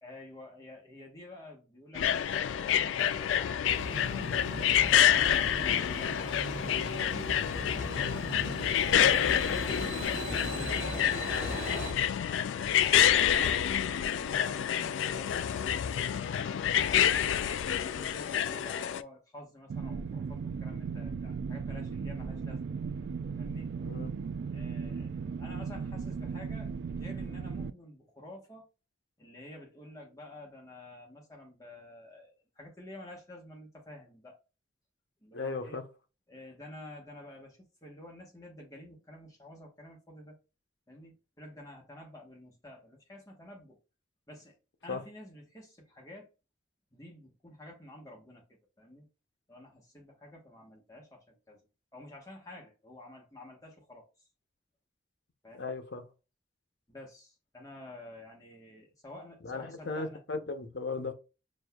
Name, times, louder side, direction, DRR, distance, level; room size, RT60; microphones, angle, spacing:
voice 1, 0.0-4.7 5.2-6.9 12.2-13.8 14.1-16.1 16.7-22.7 23.4-23.7 24.5-28.6 29.2-34.4 35.2-35.8 36.3-40.4 40.9-43.8 44.3-44.6 44.8-46.3 46.9-48.4 48.8-49.1 49.5-51.6 51.9-54.1 55.4-55.7 56.9-60.2, left 1 dB, 20° left, 1.2 m, -50 dB
sound 1, 2.0-19.0, left 9 dB, 90° left, 0.3 m, -28 dB
sound 2, 3.6-11.9, right 1 dB, 35° right, 1.0 m, -39 dB
sound 3, 19.7-27.7, right 5 dB, 70° right, 0.3 m, -36 dB
voice 2, 23.8-24.2 35.3-35.8 44.9-45.0 55.5-56.1 59.4-61.1, left 3 dB, 75° left, 0.7 m, -36 dB
6.2 x 2.6 x 2.3 m
head